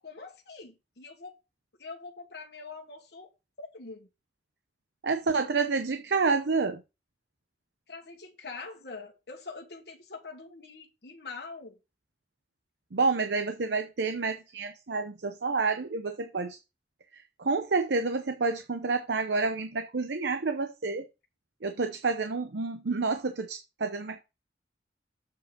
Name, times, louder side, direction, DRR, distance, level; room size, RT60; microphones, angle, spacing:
voice 1, 0.0-1.3 1.8-3.3 3.6-4.1 7.9-11.8, left 4 dB, 65° left, 1.3 m, -44 dB
voice 2, 5.0-6.8 12.9-16.6 17.1-21.1 21.6-24.2, right 4 dB, 80° right, 0.8 m, -29 dB
7.6 x 5.2 x 5.2 m
head